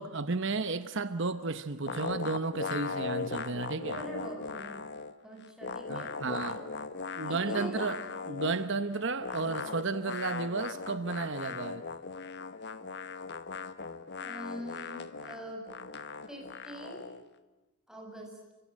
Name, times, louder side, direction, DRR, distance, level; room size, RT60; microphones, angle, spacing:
voice 1, 0.0-4.0 5.9-6.6 7.2-8.0 8.3-11.8, right 3 dB, 55° right, 1.0 m, -33 dB
sound 1, 1.9-5.2 5.4-8.7 9.2-17.2, left 4 dB, 50° left, 1.3 m, -39 dB
voice 2, 3.9-4.8 5.2-6.7 7.2-8.0 14.2-15.7 16.3-17.1 17.9-18.5, right 1 dB, 5° right, 7.5 m, -44 dB
30.0 x 25.5 x 7.6 m
head